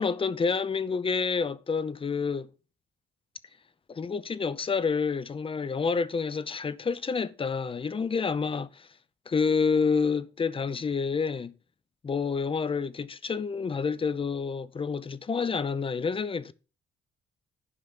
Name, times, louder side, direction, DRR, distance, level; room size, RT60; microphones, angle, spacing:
voice 1, 0.0-2.5 3.9-8.9 9.3-11.5 12.0-16.5, left 5 dB, 25° left, 0.7 m, -28 dB
11.0 x 5.2 x 5.9 m
cardioid pair, 115°, 21 cm